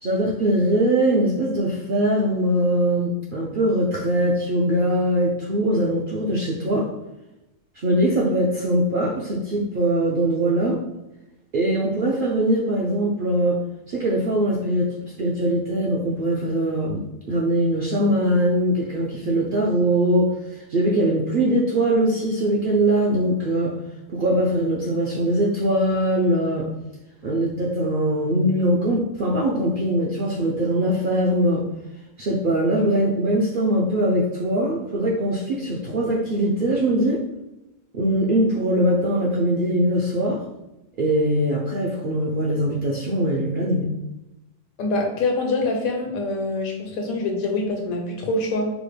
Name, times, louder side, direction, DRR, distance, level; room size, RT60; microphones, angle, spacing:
voice 1, 0.0-6.9 7.8-10.8 11.5-13.6 13.9-23.7 24.1-26.7 27.2-31.6 32.2-37.2 37.9-40.4 41.0-43.9, right 1 dB, 60° right, -3 dB, 0.5 m, -22 dB
voice 2, 44.8-48.7, left 2 dB, 80° left, 1 dB, 1.2 m, -25 dB
4.9 x 2.1 x 3.2 m, 0.93 s
omnidirectional pair, 1.4 m